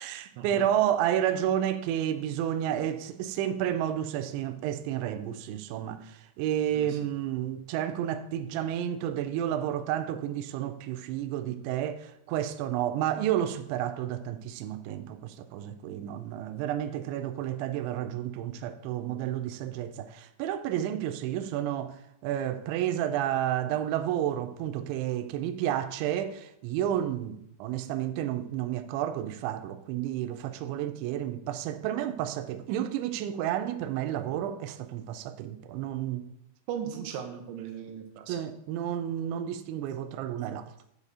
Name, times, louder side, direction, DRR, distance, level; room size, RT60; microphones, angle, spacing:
voice 1, 0.0-36.3 38.3-40.7, right 11 dB, 90° right, 2.6 m, -31 dB
voice 2, 36.7-38.4, right 8 dB, 75° right, 3.2 m, -38 dB
8.2 x 7.3 x 5.5 m
omnidirectional pair, 6.0 m